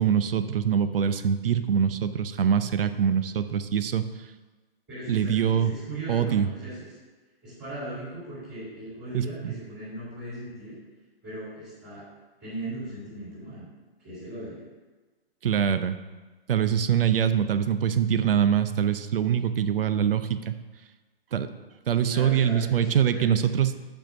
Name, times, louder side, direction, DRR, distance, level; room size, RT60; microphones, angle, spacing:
voice 1, 0.0-4.1 5.1-5.7 6.1-6.5 9.1-9.5 15.4-16.0 16.5-20.5 21.3-21.5 21.9-23.7, right 8 dB, 65° right, 11 dB, 0.6 m, -24 dB
voice 2, 4.9-7.0 7.4-10.8 11.2-12.0 12.4-13.7 14.0-14.6 21.9-23.3, right 1 dB, 10° right, -12 dB, 2.8 m, -38 dB
7.8 x 4.6 x 5.9 m, 1.3 s
hypercardioid pair, 170°, 31 cm